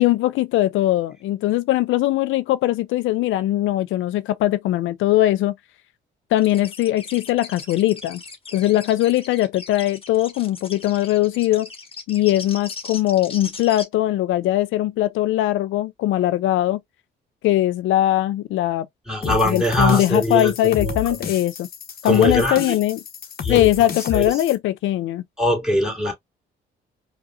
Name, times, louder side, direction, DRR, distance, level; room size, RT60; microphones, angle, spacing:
voice 1, 0.0-5.5 6.3-8.2 8.5-11.7 12.1-16.8 17.4-18.9 19.2-21.7 22.0-23.0 23.5-25.2, left 14 dB, 80° left, 0.4 m, -20 dB
sound 1, 6.4-13.8, left 4 dB, 30° left, 1.3 m, -38 dB
voice 2, 19.1-21.2 22.0-22.8 23.4-24.3 25.4-26.1, equal, 5° right, 2.3 m, -22 dB
sound 2, 19.2-24.6, left 7 dB, 50° left, 1.0 m, -31 dB
4.8 x 2.4 x 2.4 m
cardioid pair, 90°, 20 cm